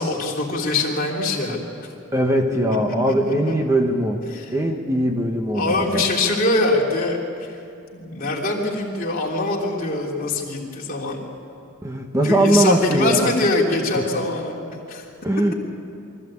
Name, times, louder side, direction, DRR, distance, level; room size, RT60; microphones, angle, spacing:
voice 1, 0.0-1.6 2.5-2.6 3.1-3.5 4.3-4.4 5.5-7.5 7.9-11.2 12.2-14.6 14.9-15.0, left 2 dB, 45° left, -2 dB, 3.3 m, -23 dB
voice 2, 2.1-4.2 4.5-6.0 11.8-13.3 14.0-14.1 15.2-15.5, right 1 dB, 15° right, 3 dB, 1.2 m, -20 dB
23.5 x 15.0 x 8.7 m, 2.6 s
head